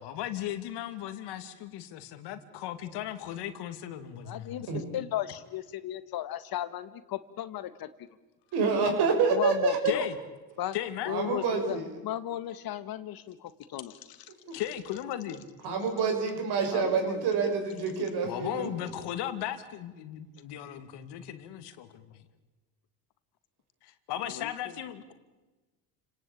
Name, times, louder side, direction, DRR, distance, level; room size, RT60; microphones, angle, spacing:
voice 1, 0.0-4.9 9.8-10.2 10.7-11.2 14.5-15.4 18.2-22.3 23.8-25.1, left 11 dB, 75° left, 10 dB, 2.5 m, -36 dB
voice 2, 4.3-7.9 9.3-10.0 10.6-10.8 11.1-11.8 12.0-13.9 16.7-17.4 24.4-24.7, left 12 dB, 60° left, 13 dB, 1.8 m, -35 dB
voice 3, 8.5-9.9 11.1-11.9 14.5-14.6 15.6-18.7, right 5 dB, 70° right, 4 dB, 7.1 m, -27 dB
30.0 x 18.5 x 8.8 m, 1.2 s
supercardioid pair, 100°, 41 cm